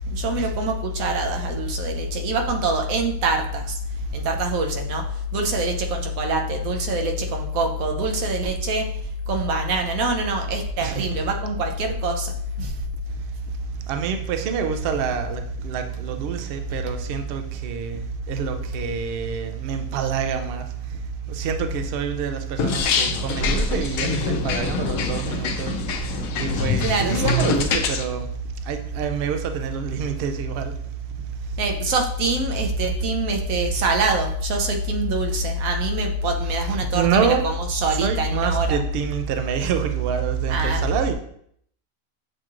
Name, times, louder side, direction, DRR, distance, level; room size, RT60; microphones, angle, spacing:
voice 1, 0.1-3.8 4.1-8.9 9.3-12.7 26.8-27.6 31.6-38.8 40.5-40.9, right 1 dB, 85° right, 1.1 m, -24 dB
voice 2, 10.8-11.2 13.9-18.0 18.3-20.7 21.3-25.8 26.4-28.3 28.7-30.7 36.4-37.5 37.9-41.1, right 7 dB, 65° right, 0.6 m, -26 dB
sound 1, 22.6-28.0, left 4 dB, 85° left, 1.0 m, -25 dB
7.3 x 3.0 x 2.4 m
omnidirectional pair, 1.4 m